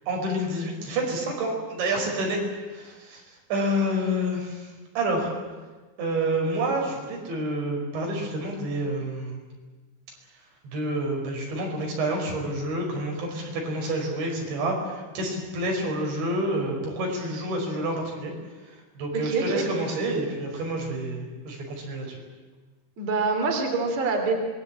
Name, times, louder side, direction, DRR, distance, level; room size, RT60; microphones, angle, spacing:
voice 1, 0.0-5.4 6.0-9.4 10.6-18.3 18.6-22.2, right 1 dB, 80° right, 0 dB, 7.5 m, -28 dB
voice 2, 19.1-19.6 23.0-24.4, right 4 dB, 40° right, 2 dB, 4.3 m, -25 dB
26.0 x 21.5 x 8.7 m, 1.3 s
omnidirectional pair, 5.1 m